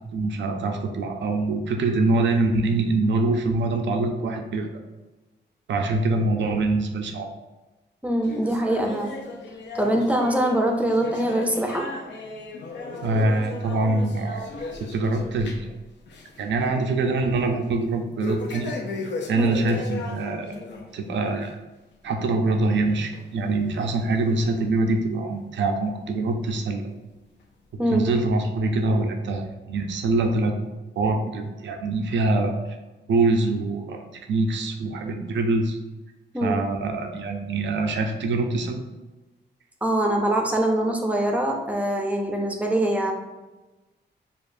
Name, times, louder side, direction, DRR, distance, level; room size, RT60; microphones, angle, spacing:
voice 1, 0.1-4.8 5.7-7.3 13.0-14.5 14.9-15.7 16.4-18.7 19.3-20.5 20.9-21.5 22.0-26.9 27.9-30.5 31.0-32.8 33.1-35.8 36.4-38.9, right 2 dB, 90° right, 4 dB, 0.5 m, -24 dB
voice 2, 8.0-9.1 9.7-11.9 19.4-19.6 27.8-28.0 36.3-36.6 39.8-43.1, right 1 dB, 10° right, 2 dB, 0.5 m, -23 dB
sound 1, 8.2-15.8 16.1-16.4 16.8-16.9 18.2-20.9 21.3-21.5 22.1-22.2 23.1-23.2 24.0-24.1, left 3 dB, 75° left, 0.7 m, -35 dB
7.0 x 2.4 x 2.6 m, 1.1 s
wide cardioid pair, 170°, 18 cm